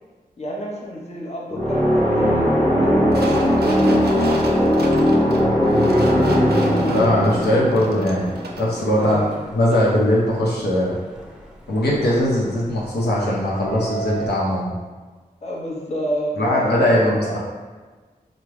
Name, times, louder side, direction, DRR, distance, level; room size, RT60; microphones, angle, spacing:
voice 1, 0.4-2.5 2.8-3.5 4.0-7.0 8.9-9.4 15.4-17.4, equal, 40° left, -3 dB, 0.8 m, -31 dB
sound 1, 1.5-9.2, equal, 15° left, 1.1 m, -19 dB
sound 2, 3.1-8.8 9.1-9.2, right 3 dB, 75° right, 0.4 m, -34 dB
Subway metro underground, 5.9-14.3, right 3 dB, 5° right, 0.7 m, -38 dB
voice 2, 6.9-8.3 8.6-9.2 9.6-11.0 11.7-14.7 16.4-17.2, left 1 dB, 85° left, -5 dB, 0.7 m, -20 dB
3.2 x 2.0 x 3.5 m, 1.4 s
cardioid pair, 40°, 17 cm